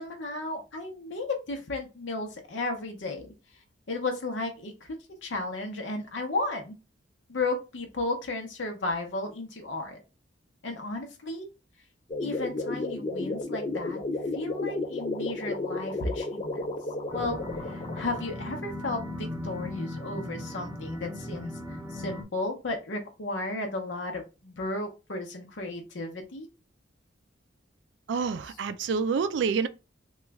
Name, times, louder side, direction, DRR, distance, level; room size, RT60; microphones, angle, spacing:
voice 1, 0.0-3.3 3.9-5.0 5.2-6.8 7.3-10.0 10.6-11.5 12.2-14.0 14.3-16.7 17.1-26.5 28.4-28.6, left 2 dB, 80° left, 0.7 m, -34 dB
sound 1, 12.1-18.3, left 2 dB, 30° left, 0.4 m, -33 dB
sound 2, 17.1-22.2, left 1 dB, 10° right, 0.6 m, -37 dB
voice 2, 28.1-29.7, right 5 dB, 70° right, 0.3 m, -27 dB
3.0 x 2.3 x 3.4 m
head